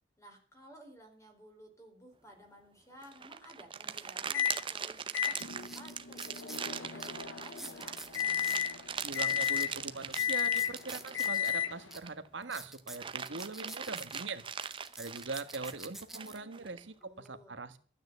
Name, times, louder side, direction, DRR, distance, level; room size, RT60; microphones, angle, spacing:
voice 1, 0.2-8.0 16.1-17.6, equal, 15° left, 3 dB, 4.0 m, -55 dB
sound 1, 3.0-12.3 12.7-16.8, right 7 dB, 25° right, 0.7 m, -41 dB
Microwave oven, 4.3-4.6 5.1-12.0, left 9 dB, 90° left, 0.9 m, -34 dB
sound 2, 4.9-5.0 5.5-6.7 7.0-7.1 7.5-8.6 9.0-11.5 11.9-12.0 12.4-14.2 14.6-16.4 17.0-17.3, right 1 dB, ahead, 1.1 m, -47 dB
voice 2, 9.0-14.4 15.0-17.8, right 3 dB, 70° right, 10 dB, 1.4 m, -42 dB
12.5 x 9.2 x 8.0 m, 0.43 s
head